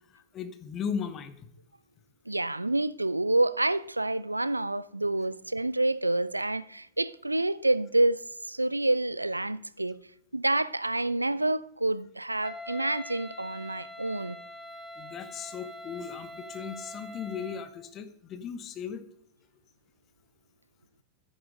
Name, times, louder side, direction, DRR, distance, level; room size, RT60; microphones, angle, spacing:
voice 1, 0.1-1.4 15.0-19.0, left 7 dB, 30° left, 1.0 m, -37 dB
voice 2, 2.3-10.0 10.3-14.4, right 2 dB, 85° right, 0.3 m, -28 dB
Wind instrument woodwind instrument, 12.4-17.8, left 1 dB, 5° left, 0.8 m, -44 dB
10.0 x 9.6 x 3.8 m
figure-of-eight pair, 90°, 0 cm